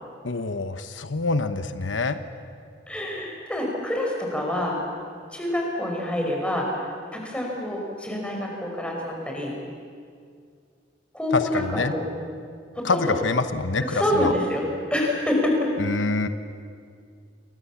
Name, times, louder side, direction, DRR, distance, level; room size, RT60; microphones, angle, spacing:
voice 1, 0.2-2.2 11.3-11.9 12.8-14.3 15.8-16.3, left 3 dB, 90° left, 10 dB, 1.1 m, -26 dB
voice 2, 2.9-4.8 5.3-9.5 11.1-12.1 12.7-13.2 13.8-15.7, left 1 dB, 5° left, -1 dB, 5.5 m, -27 dB
29.0 x 23.0 x 7.3 m, 2.2 s
head